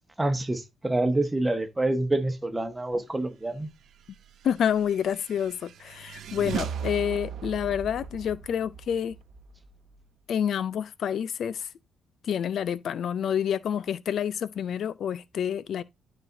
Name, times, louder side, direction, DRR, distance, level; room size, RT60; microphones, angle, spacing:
voice 1, 0.2-3.7, right 2 dB, 15° right, 1.2 m, -27 dB
voice 2, 4.4-9.2 10.3-11.7 12.2-15.8, left 8 dB, 65° left, 0.4 m, -28 dB
sound 1, 4.4-10.0, right 8 dB, 70° right, 0.7 m, -38 dB
12.0 x 4.3 x 2.6 m
cardioid pair, 90°, 0 cm